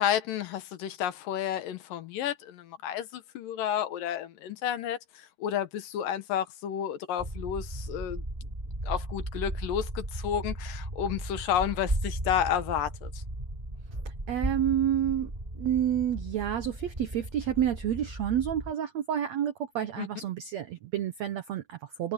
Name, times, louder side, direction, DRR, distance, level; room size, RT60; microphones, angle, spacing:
voice 1, 0.0-8.2 8.8-13.2 20.0-20.1, left 10 dB, 70° left, 2.7 m, -31 dB
sound 1, 7.2-18.7, right 1 dB, 10° right, 2.2 m, -36 dB
voice 2, 14.0-15.3 15.6-22.1, right 10 dB, 80° right, 1.5 m, -29 dB
omnidirectional pair, 4.4 m